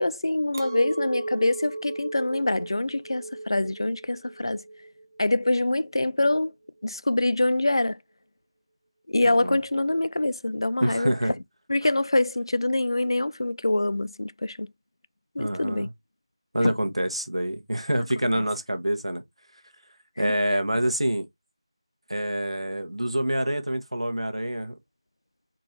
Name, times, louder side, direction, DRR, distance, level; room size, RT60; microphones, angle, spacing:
voice 1, 0.0-4.6 5.2-6.5 6.8-8.0 9.1-11.1 11.7-14.7 15.4-15.9 16.6-16.7 18.3-18.4 20.2-20.3, left 2 dB, 55° left, 0.4 m, -25 dB
Chink clink, 0.5-5.9, right 2 dB, 35° right, 0.7 m, -36 dB
voice 2, 9.2-9.6 10.8-11.3 15.4-15.9 16.5-19.2 20.2-21.3 22.1-24.7, right 1 dB, 75° right, 1.2 m, -26 dB
4.5 x 2.6 x 4.4 m
figure-of-eight pair, 170°, 3 cm